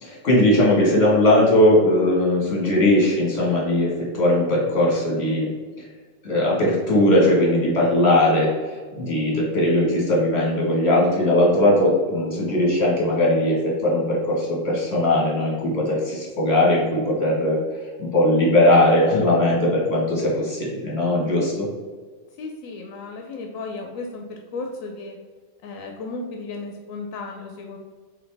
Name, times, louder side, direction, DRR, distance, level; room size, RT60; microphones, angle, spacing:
voice 1, 0.0-5.5 5.8-5.9 6.2-17.6 18.0-21.7, left 1 dB, 55° left, -4 dB, 1.6 m, -19 dB
voice 2, 22.4-25.2 25.6-27.8, left 3 dB, 90° left, 2 dB, 1.0 m, -34 dB
4.0 x 3.8 x 3.3 m, 1.5 s
omnidirectional pair, 1.4 m